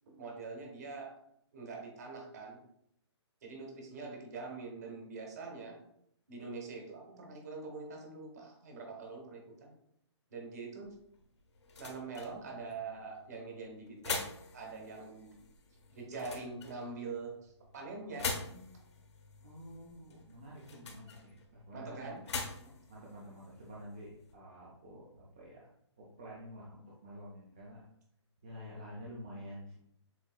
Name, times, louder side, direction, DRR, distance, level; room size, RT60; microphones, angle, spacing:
voice 1, 0.1-1.2 1.5-2.6 3.4-5.8 6.3-9.7 10.3-10.9 11.8-14.2 14.5-15.3 15.9-18.6 21.7-22.2, right 4 dB, 35° right, 1 dB, 1.1 m, -44 dB
sound 1, 10.9-24.4, left 4 dB, 70° left, 1.1 m, -45 dB
voice 2, 19.4-22.1 22.9-25.6 26.0-27.8 28.4-29.8, equal, 15° right, -6 dB, 0.4 m, -49 dB
7.1 x 2.7 x 2.3 m, 0.71 s
hypercardioid pair, 175°, 15 cm